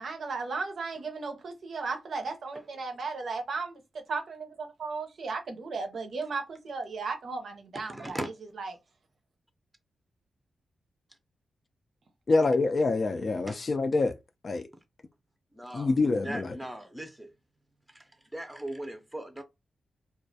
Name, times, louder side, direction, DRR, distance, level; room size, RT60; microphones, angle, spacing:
voice 1, 0.0-3.8 4.1-8.2 8.6-8.7, right 4 dB, 70° right, 0.5 m, -35 dB
voice 2, 7.8-8.3 13.5-13.6 15.5-15.9 16.2-17.3 17.9-19.4, right 1 dB, 10° right, 0.5 m, -39 dB
voice 3, 12.3-14.1 14.4-14.7 15.7-16.6, left 3 dB, 50° left, 0.3 m, -26 dB
2.3 x 2.0 x 2.6 m
cardioid pair, 55°, 0 cm